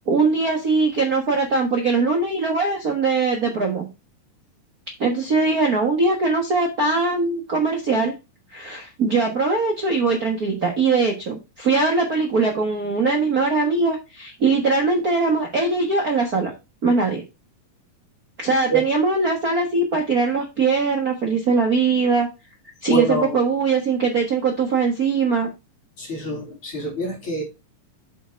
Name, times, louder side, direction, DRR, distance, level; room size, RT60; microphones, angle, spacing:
voice 1, 0.1-3.9 5.0-8.1 8.5-16.5 16.8-17.2 18.4-22.3 22.8-25.5, right 4 dB, 75° right, 1 dB, 0.8 m, -21 dB
voice 2, 22.9-23.4 26.0-27.4, right 3 dB, 40° left, -3 dB, 3.6 m, -24 dB
7.8 x 4.6 x 4.5 m, 0.26 s
omnidirectional pair, 4.0 m